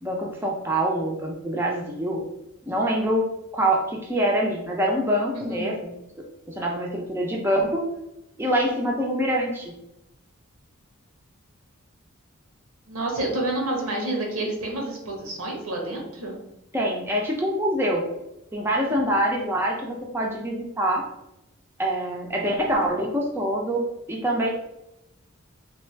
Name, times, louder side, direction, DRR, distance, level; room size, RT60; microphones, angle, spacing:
voice 1, 0.0-2.3 2.7-3.2 3.5-5.9 6.5-7.9 8.4-9.8 16.7-18.0 18.5-21.0 21.8-23.8 24.1-24.5, right 1 dB, 10° right, -2 dB, 0.5 m, -25 dB
voice 2, 5.3-5.7 12.9-16.4 19.1-19.3, right 2 dB, 90° right, 0 dB, 1.1 m, -29 dB
3.3 x 2.4 x 4.4 m, 0.87 s
head